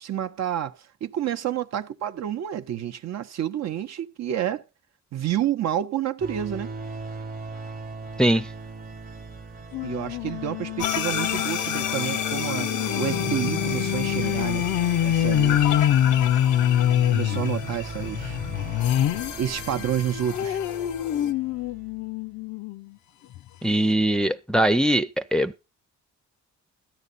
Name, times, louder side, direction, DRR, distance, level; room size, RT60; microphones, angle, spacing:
voice 1, 0.0-4.6 5.1-6.7 9.8-12.7 13.0-14.7 15.0-15.9 17.1-18.4 19.4-20.6, right 10 dB, 60° right, 0.8 m, -29 dB
sound 1, 6.2-22.1, right 3 dB, 30° right, 1.0 m, -38 dB
sound 2, 9.7-19.3 19.8-22.8 23.3-23.4 23.7-23.8, left 11 dB, 70° left, 0.6 m, -25 dB
sound 3, 10.8-21.3, left 8 dB, 90° left, 1.0 m, -32 dB
voice 2, 23.6-25.6, right 1 dB, 5° left, 0.5 m, -21 dB
13.0 x 9.9 x 4.0 m
cardioid pair, 90°, 30 cm